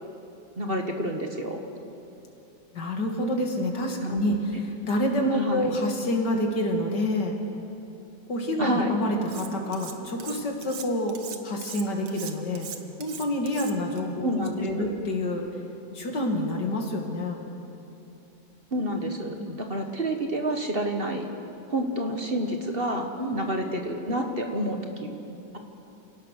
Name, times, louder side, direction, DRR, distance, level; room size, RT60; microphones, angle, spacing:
voice 1, 0.6-1.6 4.0-4.3 5.3-5.7 8.6-8.9 14.2-14.9 18.7-21.3 21.7-25.6, right 1 dB, 30° right, 4 dB, 1.7 m, -29 dB
voice 2, 2.7-7.4 8.3-11.2 11.4-12.7 13.0-14.3 14.6-15.5 15.9-17.4 19.4-19.6 23.2-23.4, left 1 dB, 65° left, 2 dB, 2.9 m, -28 dB
Cutlery silverware, 9.3-9.9 10.2-14.0, right 7 dB, 85° right, 2.0 m, -40 dB
28.0 x 18.0 x 6.7 m, 2.8 s
omnidirectional pair, 2.0 m